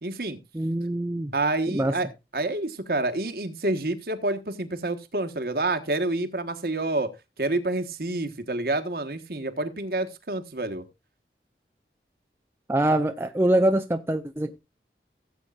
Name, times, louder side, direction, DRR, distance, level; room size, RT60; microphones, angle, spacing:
voice 1, 0.0-0.4 1.3-7.1 7.4-10.8, right 2 dB, 55° right, 1.3 m, -28 dB
voice 2, 0.5-1.3 1.7-2.0 12.7-14.6, right 1 dB, 15° right, 0.5 m, -24 dB
16.5 x 8.1 x 2.4 m
head